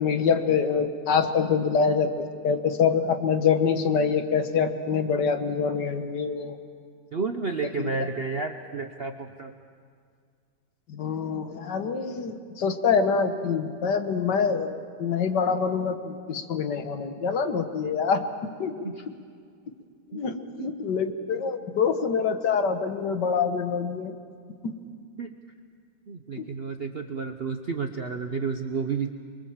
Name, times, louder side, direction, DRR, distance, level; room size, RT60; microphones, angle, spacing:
voice 1, 0.0-6.6 7.8-7.9 10.9-18.9 20.1-24.1 24.6-24.8 26.4-26.5, left 6 dB, 65° left, 8 dB, 1.8 m, -25 dB
voice 2, 7.1-9.5 18.8-19.1 20.1-20.2 20.6-20.7 25.2-25.3 26.1-29.1, right 5 dB, 50° right, 6 dB, 0.7 m, -31 dB
25.0 x 23.0 x 7.4 m, 2.1 s
omnidirectional pair, 2.1 m